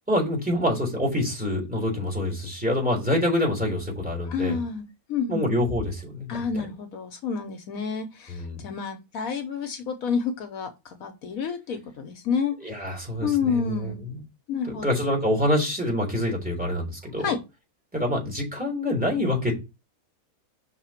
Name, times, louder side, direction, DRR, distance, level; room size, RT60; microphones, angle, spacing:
voice 1, 0.1-4.6 5.3-6.6 8.3-8.7 12.6-14.2 14.6-17.3 17.9-19.5, left 1 dB, 5° right, 3.6 m, -26 dB
voice 2, 4.2-5.5 6.3-12.5 13.2-14.0 14.5-14.9 17.2-17.4, left 6 dB, 70° left, 1.3 m, -29 dB
5.8 x 4.2 x 5.7 m
omnidirectional pair, 1.5 m